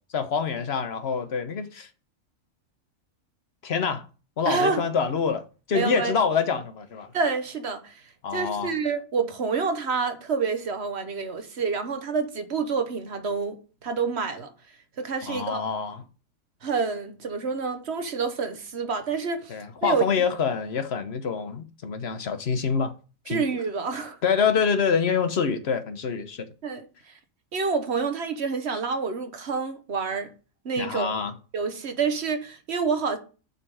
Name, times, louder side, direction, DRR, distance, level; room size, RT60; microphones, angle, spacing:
voice 1, 0.1-1.9 3.6-4.0 4.4-5.4 5.7-7.1 8.2-8.7 15.2-16.0 19.5-22.9 23.3-23.4 24.2-26.5 30.8-31.3, left 6 dB, 50° left, 1.2 m, -26 dB
voice 2, 4.4-4.8 5.7-6.1 7.1-8.0 8.3-13.6 13.8-14.5 15.0-15.6 16.6-19.6 19.8-20.0 23.3-24.2 26.6-27.1 27.5-30.3 30.6-31.2 31.5-33.2, right 5 dB, 50° right, 1.3 m, -28 dB
7.3 x 5.7 x 4.9 m
omnidirectional pair, 1.4 m